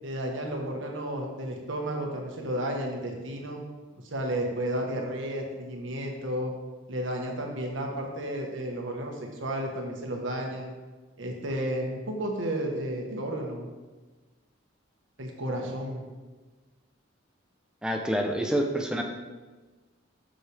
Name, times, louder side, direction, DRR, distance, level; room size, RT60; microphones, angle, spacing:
voice 1, 0.0-3.6 4.1-6.5 6.9-9.1 9.4-10.7 11.2-13.7 15.2-16.0, right 1 dB, 75° right, 1 dB, 1.3 m, -32 dB
voice 2, 17.8-19.0, equal, 5° right, 2 dB, 0.6 m, -27 dB
7.5 x 6.6 x 3.4 m, 1.3 s
head